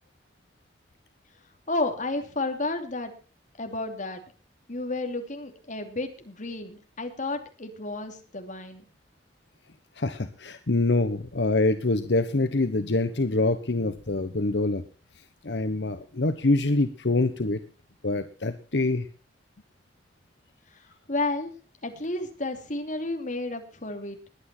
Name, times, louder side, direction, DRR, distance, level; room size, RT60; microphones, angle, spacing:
voice 1, 1.7-3.1 3.6-4.2 4.7-8.8 21.1-21.5 21.8-24.2, left 2 dB, 45° left, 5 dB, 2.8 m, -31 dB
voice 2, 10.0-14.8 15.4-17.6 18.0-19.1, left 2 dB, 75° left, 9 dB, 1.1 m, -25 dB
21.0 x 9.0 x 4.4 m, 0.36 s
head